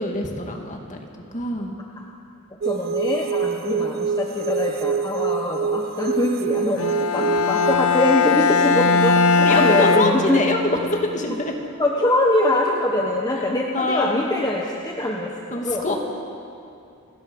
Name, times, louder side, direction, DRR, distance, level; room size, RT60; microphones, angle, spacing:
voice 1, 0.0-1.7 5.2-5.3 7.2-7.3 9.4-11.6 13.3-13.4 13.7-14.4 15.5-16.0, left 2 dB, 35° left, 2 dB, 2.3 m, -25 dB
voice 2, 2.6-10.4 11.8-15.3 15.6-15.9, left 1 dB, 20° left, -1 dB, 1.4 m, -23 dB
sound 1, 2.6-7.8, right 6 dB, 45° right, 0.5 m, -26 dB
Bowed string instrument, 6.8-10.9, left 4 dB, 70° left, 0.8 m, -19 dB
29.5 x 17.5 x 5.5 m, 2.6 s
head